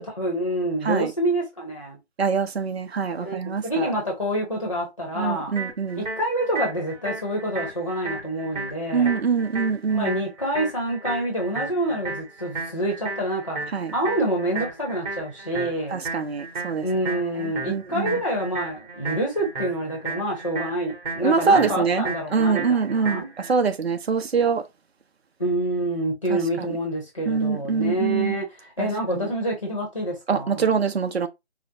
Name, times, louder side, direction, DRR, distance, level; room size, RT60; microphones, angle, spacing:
voice 1, 0.0-2.0 3.2-3.4 3.6-5.6 5.9-9.1 9.9-13.6 13.9-16.0 16.8-23.3 25.4-30.7, right 1 dB, 30° left, 0.8 m, -27 dB
voice 2, 2.2-3.9 5.2-6.0 8.9-10.1 13.7-13.9 15.9-16.8 17.4-18.2 21.2-22.0 22.3-23.2 23.5-24.6 26.3-26.4 27.3-28.4 28.8-29.2 30.3-31.3, right 5 dB, 60° right, 0.6 m, -24 dB
sound 1, 5.6-23.5, right 3 dB, 40° right, 2.2 m, -34 dB
4.8 x 2.0 x 2.7 m
figure-of-eight pair, 165°, 36 cm